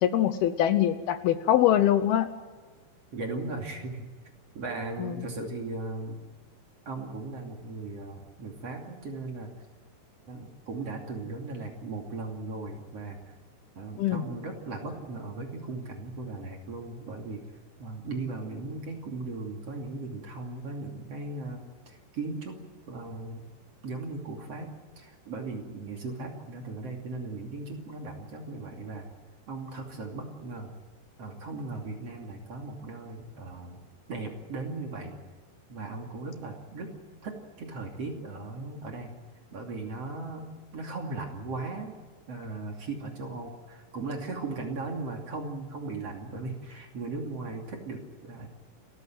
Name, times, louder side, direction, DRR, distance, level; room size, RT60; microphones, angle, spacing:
voice 1, 0.0-2.3 5.0-5.3 14.0-14.2, left 11 dB, 75° left, 11 dB, 2.6 m, -23 dB
voice 2, 3.1-4.1 4.6-6.2 6.9-9.5 10.2-13.4 13.7-17.4 17.8-22.6 22.9-23.5 23.8-29.0 29.5-30.8 31.2-33.8 34.1-35.2 35.7-36.9 37.2-39.2 39.5-40.5 40.7-42.0 42.3-48.5, right 3 dB, 40° right, 2 dB, 3.3 m, -37 dB
29.0 x 14.5 x 9.2 m, 1.4 s
omnidirectional pair, 4.9 m